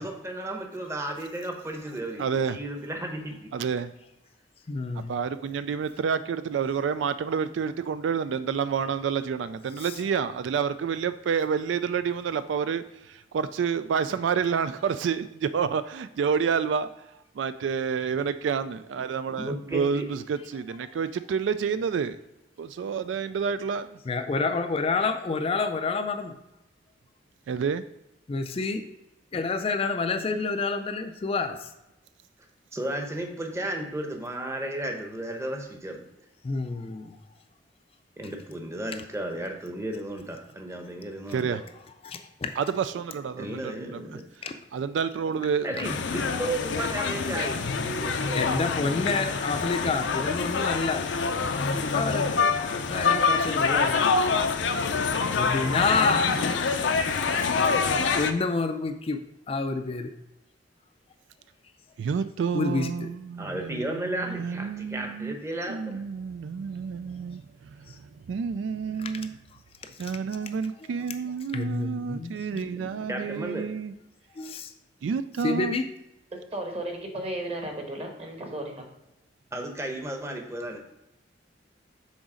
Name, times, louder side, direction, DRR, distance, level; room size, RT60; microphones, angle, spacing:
voice 1, 0.0-3.5 19.4-20.1 32.7-36.1 38.2-41.6 43.3-44.2 45.6-49.3 63.4-66.0 73.1-73.6 79.5-80.8, right 1 dB, 15° right, 3 dB, 0.8 m, -34 dB
voice 2, 2.2-2.6 3.5-3.9 4.9-16.9 17.4-22.2 22.6-24.0 27.5-27.8 41.3-41.6 42.6-44.1 44.7-45.7 62.0-65.4 65.7-69.4 70.0-73.9 75.0-75.8, right 6 dB, 80° right, 12 dB, 0.3 m, -29 dB
voice 3, 4.7-5.1 9.8-9.9 24.1-26.4 28.3-28.8 29.3-31.7 36.4-37.2 42.0-42.5 44.4-44.5 45.8-46.0 48.3-54.2 55.2-56.2 58.2-59.2 59.5-60.1 62.5-63.1 65.6-65.8 67.9-68.0 69.0-69.1 70.0-70.1 70.4-70.5 71.5-73.1 74.4-74.7 75.4-75.8, left 4 dB, 30° left, 7 dB, 0.4 m, -29 dB
sound 1, 45.8-58.3, left 5 dB, 80° left, 0.5 m, -26 dB
voice 4, 76.3-78.9, right 1 dB, 35° right, 2 dB, 1.2 m, -34 dB
6.2 x 4.0 x 4.9 m, 0.90 s
head